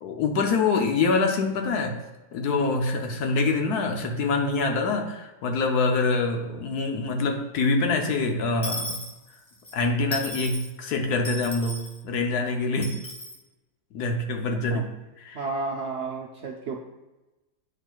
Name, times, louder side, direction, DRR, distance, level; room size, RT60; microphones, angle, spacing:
voice 1, 0.0-2.0 2.3-9.0 9.7-13.0 13.9-15.4, left 3 dB, 75° left, 4 dB, 1.3 m, -25 dB
Dishes pots and pans / Coin (dropping), 8.6-9.7 10.1-10.7 11.2-12.0 12.8-13.4, left 1 dB, 25° left, 0.7 m, -35 dB
voice 2, 15.3-16.8, right 3 dB, 65° right, 0 dB, 0.7 m, -32 dB
9.2 x 4.5 x 2.3 m, 1.1 s
omnidirectional pair, 1.7 m